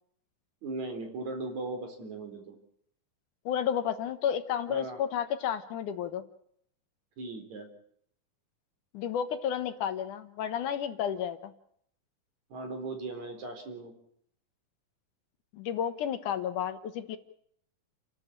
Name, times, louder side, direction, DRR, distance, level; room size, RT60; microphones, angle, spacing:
voice 1, 0.6-2.6 4.7-5.0 7.2-7.7 12.5-13.9, right 3 dB, 60° right, 4 dB, 5.1 m, -38 dB
voice 2, 3.5-6.2 8.9-11.5 15.5-17.2, left 9 dB, 75° left, 10 dB, 2.6 m, -31 dB
29.5 x 12.5 x 8.7 m, 0.68 s
omnidirectional pair, 3.7 m